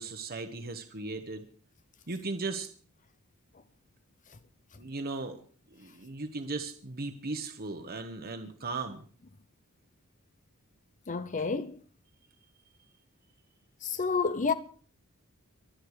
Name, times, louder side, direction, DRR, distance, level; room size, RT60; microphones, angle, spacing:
voice 1, 0.0-1.4 2.1-2.7 4.8-5.4 5.7-9.0, right 3 dB, 45° right, 1.3 m, -37 dB
voice 2, 11.1-11.8 13.8-14.5, left 5 dB, 35° left, 0.7 m, -29 dB
24.0 x 9.0 x 4.9 m
head